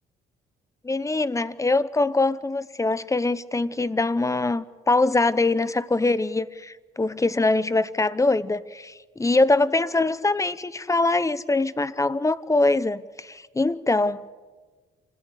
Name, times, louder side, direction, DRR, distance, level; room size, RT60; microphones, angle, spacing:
voice 1, 0.8-14.3, left 2 dB, 15° left, 17 dB, 0.8 m, -23 dB
27.0 x 15.5 x 8.2 m, 1.4 s
cardioid pair, 90°, 20 cm